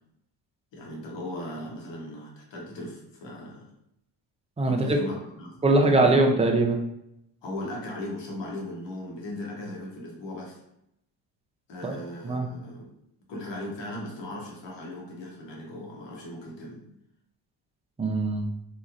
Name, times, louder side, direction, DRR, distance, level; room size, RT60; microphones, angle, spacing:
voice 1, 0.7-3.7 4.7-6.2 7.4-10.6 11.7-12.8 13.3-16.9, left 1 dB, 60° left, -2 dB, 1.1 m, -38 dB
voice 2, 4.6-5.0 5.6-6.8 11.8-12.0 12.2-12.5 18.0-18.5, right 2 dB, 15° right, 2 dB, 0.5 m, -21 dB
3.0 x 2.4 x 2.4 m, 0.80 s
supercardioid pair, 65°, 48 cm